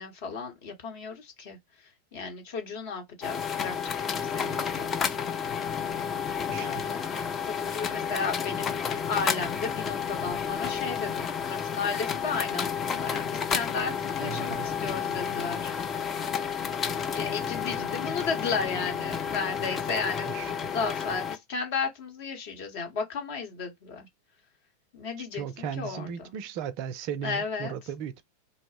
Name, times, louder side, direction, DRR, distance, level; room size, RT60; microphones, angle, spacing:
voice 1, 0.0-1.6 2.1-4.9 5.9-15.7 17.0-24.1 24.9-26.3 27.2-27.7, left 5 dB, 50° left, 0.9 m, -34 dB
sound 1, 3.2-21.4, left 7 dB, 25° left, 0.4 m, -31 dB
voice 2, 6.5-6.9 14.2-14.7 20.2-20.5 25.3-28.2, right 8 dB, 45° right, 0.4 m, -36 dB
2.5 x 2.0 x 3.3 m
figure-of-eight pair, 90°, 0 cm